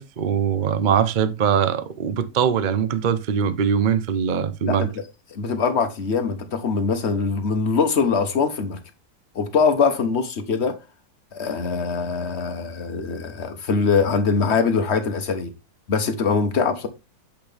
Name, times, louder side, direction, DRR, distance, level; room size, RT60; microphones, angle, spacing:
voice 1, 0.0-4.8, right 7 dB, 60° right, 0.5 m, -22 dB
voice 2, 4.6-5.0 5.3-8.8 9.3-10.8 11.3-15.5 15.9-16.9, left 5 dB, 40° left, 1.3 m, -22 dB
8.6 x 5.8 x 3.4 m
omnidirectional pair, 2.0 m